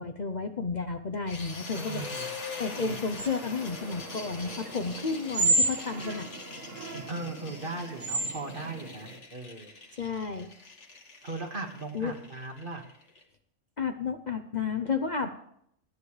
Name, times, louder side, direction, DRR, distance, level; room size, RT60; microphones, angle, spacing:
voice 1, 0.0-2.1 2.6-6.3 10.0-10.5 11.9-12.1 13.8-15.3, left 5 dB, 40° left, 6 dB, 0.8 m, -32 dB
sound 1, 1.3-13.2, left 4 dB, 65° left, 2.1 m, -43 dB
voice 2, 1.7-2.4 2.8-3.0 7.1-9.7 11.2-12.8, right 3 dB, 45° right, 3 dB, 2.0 m, -38 dB
sound 2, 3.2-9.2, right 2 dB, 75° right, 2.1 m, -32 dB
28.0 x 9.6 x 3.3 m, 0.71 s
omnidirectional pair, 1.3 m